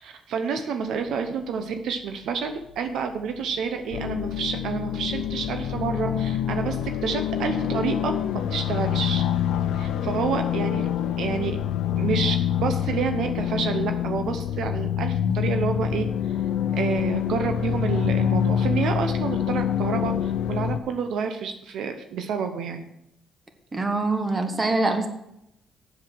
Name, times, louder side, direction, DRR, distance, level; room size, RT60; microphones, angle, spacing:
voice 1, 0.0-6.8 7.0-8.1 8.5-9.2 9.7-10.9 11.2-11.6 11.9-16.0 16.7-22.9 23.7-23.9, right 6 dB, 75° right, 6 dB, 0.8 m, -29 dB
sound 1, 3.9-20.8, left 9 dB, 85° left, 0.6 m, -26 dB
voice 2, 23.7-25.1, right 2 dB, 25° right, 6 dB, 1.5 m, -24 dB
7.6 x 7.1 x 6.3 m, 0.82 s
cardioid pair, 90°, 0 cm